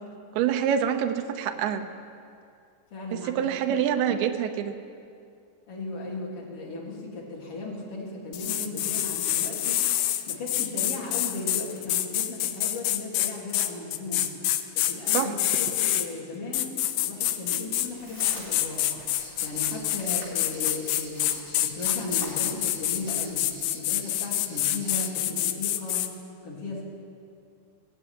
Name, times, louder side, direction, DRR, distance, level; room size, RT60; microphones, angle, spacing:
voice 1, 0.3-1.9 3.1-4.7 15.1-15.4, right 9 dB, 80° right, 6 dB, 2.8 m, -26 dB
voice 2, 2.9-3.5 5.7-14.3 14.7-16.7 17.0-21.3 21.6-23.5 23.7-26.0 26.4-26.8, left 2 dB, 40° left, -3 dB, 3.1 m, -36 dB
sound 1, 8.3-16.1 16.5-17.9 18.2-26.1, left 13 dB, 90° left, 2.7 m, -27 dB
sound 2, 17.7-23.6, left 1 dB, 25° left, 3.3 m, -46 dB
sound 3, 19.2-25.1, right 3 dB, 30° right, 3.1 m, -48 dB
20.0 x 6.7 x 9.2 m, 2.4 s
omnidirectional pair, 4.5 m